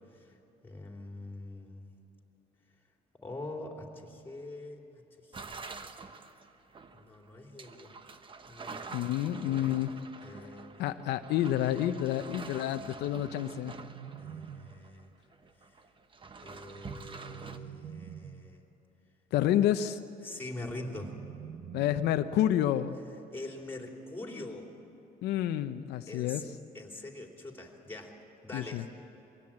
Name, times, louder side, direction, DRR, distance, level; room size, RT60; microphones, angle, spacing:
voice 1, 0.6-1.9 3.2-4.8 5.2-5.7 6.9-8.0 8.5-8.9 9.5-9.7 10.2-10.7 14.2-15.1 16.4-18.6 20.2-21.1 23.3-24.7 26.1-26.4 26.7-28.2 28.4-28.9, left 2 dB, 15° left, 1 dB, 3.4 m, -44 dB
sound 1, 5.3-15.1 15.3-17.6, right 4 dB, 30° right, 1.1 m, -47 dB
voice 2, 8.9-9.9 10.3-10.4 10.8-13.7 19.3-20.0 21.7-23.0 25.2-26.5 28.5-28.8, left 12 dB, 80° left, 9 dB, 0.7 m, -29 dB
sound 2, 13.0-15.0 16.7-18.6 20.4-22.4, right 9 dB, 65° right, 0.9 m, -47 dB
23.0 x 17.0 x 8.7 m, 3.0 s
cardioid pair, 110°, 17 cm